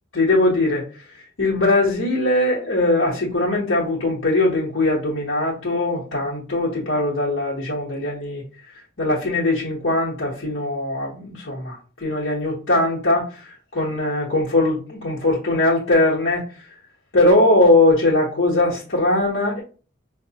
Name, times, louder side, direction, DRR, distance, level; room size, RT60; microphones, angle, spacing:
voice 1, 0.1-0.8 1.4-8.4 9.0-16.4 17.1-19.6, left 2 dB, 75° left, -6 dB, 1.1 m, -20 dB
5.1 x 2.1 x 2.8 m, 0.37 s
head